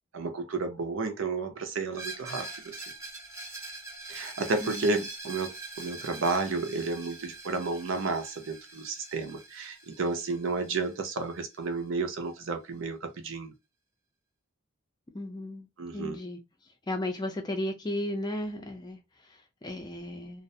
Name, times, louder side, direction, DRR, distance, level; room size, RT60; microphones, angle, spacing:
voice 1, 0.1-2.8 4.1-13.5 15.8-16.2, right 3 dB, 65° right, 0.5 m, -32 dB
Screech, 1.9-11.6, right 2 dB, 15° right, 0.7 m, -43 dB
voice 2, 4.6-5.0 15.1-15.7 15.9-16.4 16.9-20.4, left 1 dB, 20° left, 0.4 m, -35 dB
2.4 x 2.1 x 2.6 m
head